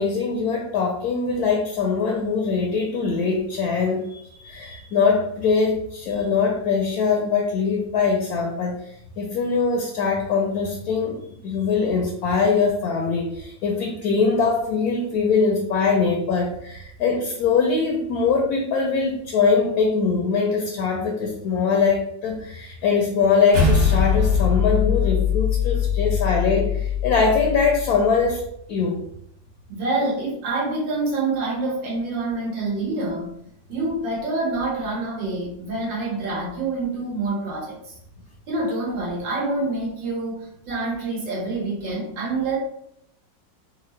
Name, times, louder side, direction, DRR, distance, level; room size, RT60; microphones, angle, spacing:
voice 1, 0.0-28.4 28.7-29.0, left 5 dB, 70° left, 1 dB, 0.9 m, -22 dB
sound 1, 23.5-28.1, left 6 dB, 45° right, 1.2 m, -22 dB
voice 2, 29.7-33.3 33.7-37.9 38.5-42.6, right 2 dB, 85° right, -4 dB, 1.8 m, -26 dB
3.9 x 2.3 x 3.1 m, 0.73 s
omnidirectional pair, 2.0 m